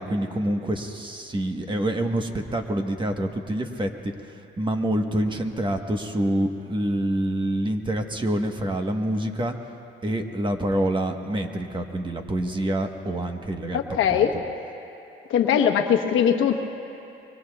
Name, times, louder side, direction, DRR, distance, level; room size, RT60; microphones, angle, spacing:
voice 1, 0.0-9.5 10.0-13.8 14.1-14.3, right 1 dB, 25° right, 4 dB, 1.2 m, -27 dB
voice 2, 13.7-14.3 15.3-16.6, left 8 dB, 80° left, 4 dB, 1.1 m, -21 dB
25.0 x 23.0 x 2.4 m, 2.8 s
cardioid pair, 90°, 20 cm